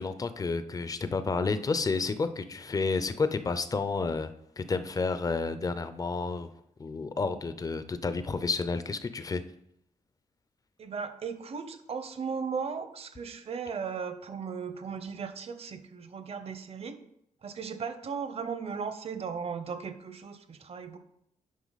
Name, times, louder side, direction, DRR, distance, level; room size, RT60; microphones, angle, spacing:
voice 1, 0.0-4.3 4.6-6.5 6.8-9.4, left 4 dB, 25° left, 11 dB, 0.5 m, -30 dB
voice 2, 10.8-17.0 17.4-21.0, right 6 dB, 45° right, 9 dB, 0.8 m, -36 dB
9.3 x 5.7 x 4.0 m, 0.74 s
wide cardioid pair, 140°, 14 cm